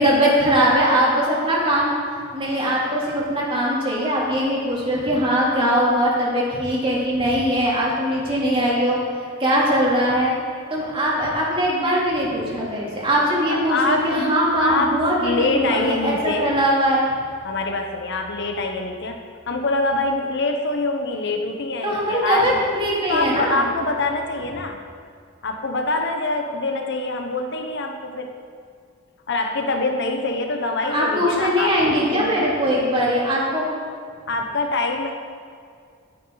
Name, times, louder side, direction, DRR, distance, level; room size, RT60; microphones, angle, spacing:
voice 1, 0.0-2.0 2.3-9.0 9.4-10.3 10.7-17.0 21.8-23.6 30.9-33.7, equal, 25° right, -5 dB, 3.3 m, -21 dB
voice 2, 13.5-14.2 14.6-16.5 17.4-22.6 23.1-24.8 25.4-28.3 29.3-32.4 34.3-35.2, left 2 dB, 60° left, 4 dB, 1.1 m, -25 dB
17.5 x 9.8 x 4.1 m, 2.2 s
head